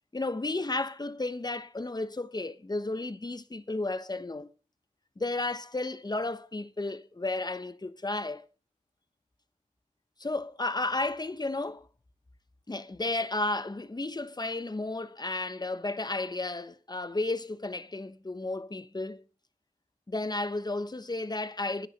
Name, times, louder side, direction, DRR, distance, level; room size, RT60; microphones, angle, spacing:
voice 1, 0.1-4.5 5.2-8.4 10.2-11.9 12.7-19.2 20.1-21.9, left 2 dB, 30° left, 1.0 m, -33 dB
10.5 x 10.0 x 6.5 m
wide cardioid pair, 65°, 14 cm